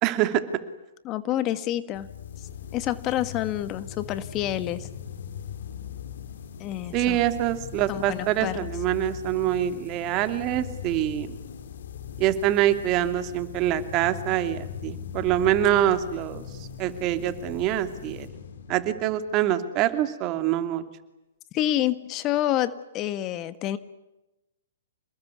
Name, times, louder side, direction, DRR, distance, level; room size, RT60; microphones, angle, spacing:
voice 1, 0.0-0.4 6.9-11.4 12.2-18.3 18.7-20.8, right 12 dB, 35° right, 10 dB, 2.7 m, -25 dB
voice 2, 1.0-2.1 2.4-4.9 6.6-7.2 7.9-8.7 21.5-23.8, left 13 dB, 30° left, 13 dB, 1.5 m, -28 dB
sound 1, 1.9-19.5, left 8 dB, 65° left, 3.0 m, -40 dB
28.5 x 20.5 x 9.5 m, 0.96 s
hypercardioid pair, 125°, 0 cm